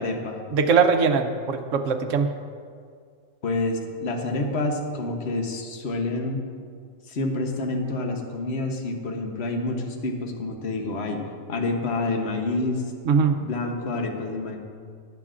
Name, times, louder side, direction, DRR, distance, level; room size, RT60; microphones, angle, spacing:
voice 1, 0.0-0.4 3.4-6.4 7.1-11.2 11.5-12.8 13.4-14.6, left 2 dB, 55° left, 3 dB, 1.3 m, -28 dB
voice 2, 0.5-2.3 13.1-13.4, right 5 dB, 70° right, 7 dB, 1.1 m, -21 dB
18.5 x 8.4 x 2.5 m, 2.1 s
omnidirectional pair, 1.4 m